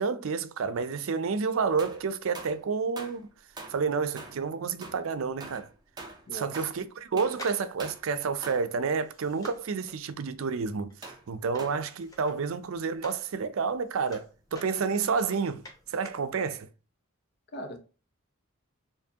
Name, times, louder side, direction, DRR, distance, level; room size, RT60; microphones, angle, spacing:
voice 1, 0.0-3.3 3.7-5.7 6.3-10.9 11.3-16.7, right 5 dB, 70° right, 0.4 m, -30 dB
sound 1, 1.8-2.7 3.0-3.3 3.6-4.5 4.8-6.9 7.2-7.5 7.8-8.1 8.4-8.8 9.3-9.6 11.0-11.3 11.6-11.9 12.9-13.0 13.2-13.3 16.5-16.6, right 3 dB, 20° right, 0.6 m, -44 dB
voice 2, 6.3-6.7 17.5-17.8, right 1 dB, 50° left, 0.8 m, -40 dB
sound 2, 7.3-13.3 13.6-16.3 16.6-16.7, left 1 dB, 15° left, 0.8 m, -50 dB
4.5 x 2.7 x 2.8 m
head